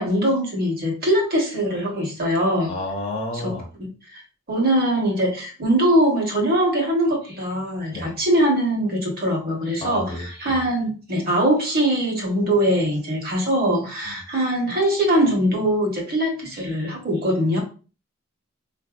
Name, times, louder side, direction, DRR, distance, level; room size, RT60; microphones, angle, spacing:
voice 1, 0.0-2.7 3.3-3.4 4.5-17.6, right 1 dB, 45° right, 0 dB, 1.1 m, -22 dB
voice 2, 2.7-3.7 7.9-8.1 9.8-10.6 14.1-14.2, left 1 dB, 30° left, 0 dB, 0.8 m, -31 dB
4.2 x 2.6 x 2.4 m, 0.35 s
head